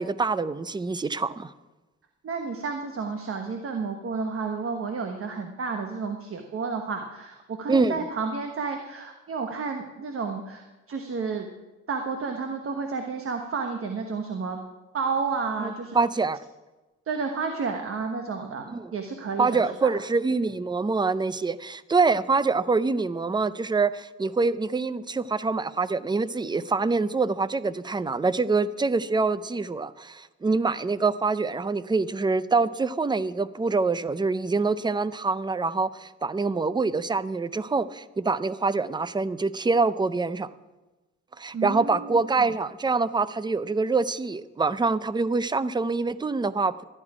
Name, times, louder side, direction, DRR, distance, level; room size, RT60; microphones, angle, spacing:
voice 1, 0.0-1.5 7.7-8.0 15.6-16.4 18.7-18.9 19.4-40.5 41.4-46.8, right 4 dB, 15° right, 16 dB, 0.5 m, -25 dB
voice 2, 2.2-11.5 11.9-14.6 14.9-16.0 17.1-19.9 41.5-42.2, right 4 dB, 45° right, 5 dB, 1.2 m, -31 dB
13.0 x 11.0 x 4.9 m, 1.1 s
cardioid pair, 90°, 30 cm